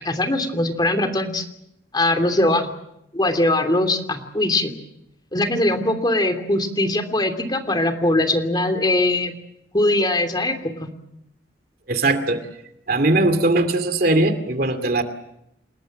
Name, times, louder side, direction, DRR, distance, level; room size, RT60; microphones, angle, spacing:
voice 1, 0.0-1.5 1.9-2.7 3.1-4.7 5.3-9.3 9.7-10.9, left 1 dB, 25° left, 7 dB, 2.9 m, -21 dB
voice 2, 11.9-12.4 12.9-15.0, right 2 dB, 55° right, 9 dB, 2.5 m, -19 dB
29.0 x 20.5 x 7.7 m, 0.80 s
head